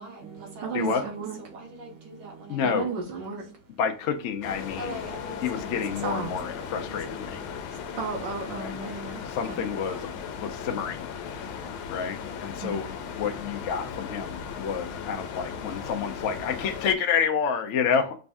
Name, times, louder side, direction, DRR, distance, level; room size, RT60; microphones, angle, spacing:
voice 1, 0.0-3.6 4.6-8.0, right 2 dB, 85° right, 2.1 m, -43 dB
voice 2, 0.6-1.4 2.6-3.5 6.0-6.4 8.0-9.2 9.5-9.6 12.6-12.8, right 4 dB, 70° right, 1.4 m, -33 dB
voice 3, 2.5-2.9 3.8-5.1 5.4-7.7 8.5-8.7 9.3-10.0 10.3-18.2, left 7 dB, 70° left, 0.6 m, -29 dB
sound 1, 4.4-17.0, left 7 dB, 90° left, 1.5 m, -37 dB
5.1 x 2.6 x 3.5 m
omnidirectional pair, 2.2 m